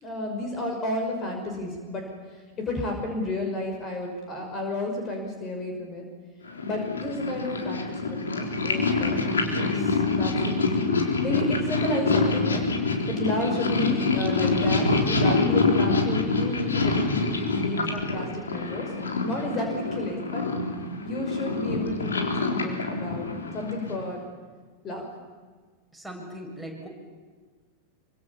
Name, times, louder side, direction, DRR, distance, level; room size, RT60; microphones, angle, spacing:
voice 1, 0.0-6.1 6.6-9.2 9.7-10.9 11.2-12.7 13.1-18.9 19.2-20.5 21.0-24.2 24.8-25.1, left 1 dB, 25° left, 3 dB, 5.9 m, -32 dB
Purr, 6.5-24.1, left 3 dB, 70° left, 3.9 m, -26 dB
voice 2, 9.4-10.0 17.5-18.0 25.9-26.9, right 2 dB, ahead, -1 dB, 7.3 m, -39 dB
27.0 x 25.5 x 7.3 m, 1.5 s
figure-of-eight pair, 90°, 0 cm